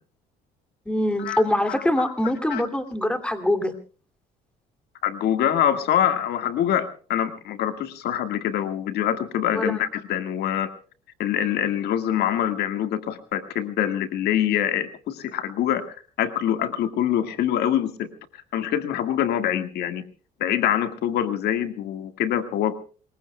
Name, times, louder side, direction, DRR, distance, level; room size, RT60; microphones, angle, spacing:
voice 1, 0.9-3.7 9.5-9.8, left 1 dB, 5° left, 7 dB, 2.7 m, -24 dB
voice 2, 1.7-2.1 2.5-2.6 5.0-10.7 11.2-15.8 16.2-18.1 18.5-20.0 20.4-22.8, left 10 dB, 75° left, 9 dB, 1.8 m, -25 dB
27.5 x 22.0 x 2.3 m, 0.40 s
cardioid pair, 110°, 17 cm